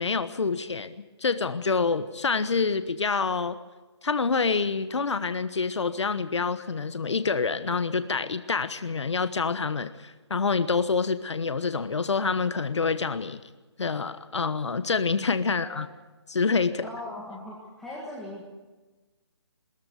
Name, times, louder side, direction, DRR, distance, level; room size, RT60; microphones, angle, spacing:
voice 1, 0.0-3.6 4.0-13.4 13.8-15.9 16.3-16.9, left 4 dB, 80° left, 12 dB, 1.1 m, -27 dB
voice 2, 16.8-18.4, left 1 dB, ahead, -6 dB, 1.9 m, -39 dB
21.5 x 14.0 x 9.3 m, 1.2 s
hypercardioid pair, 165°, 15 cm